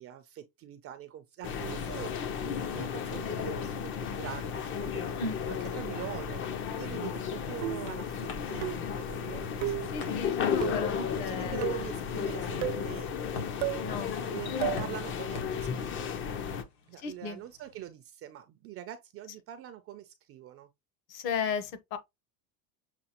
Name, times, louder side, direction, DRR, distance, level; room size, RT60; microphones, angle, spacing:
voice 1, 0.0-2.1 2.4-5.1 5.4-10.5 11.1-16.2 16.9-20.7, right 11 dB, 30° right, 0.4 m, -44 dB
sound 1, 1.4-16.6, left 7 dB, 30° left, 0.4 m, -34 dB
sound 2, 6.8-17.9, left 4 dB, 85° left, 1.7 m, -50 dB
sound 3, 7.6-8.0 8.6-9.0 9.6-9.9 10.6-10.9 11.6-11.9 12.6-12.9 13.6-13.9 14.6-14.9, right 15 dB, 90° right, 0.9 m, -33 dB
voice 2, 9.9-11.7 13.8-14.2 14.6-14.9 17.0-17.4 21.1-22.0, left 5 dB, 50° left, 1.0 m, -35 dB
6.8 x 2.3 x 2.8 m
supercardioid pair, 140°, 47 cm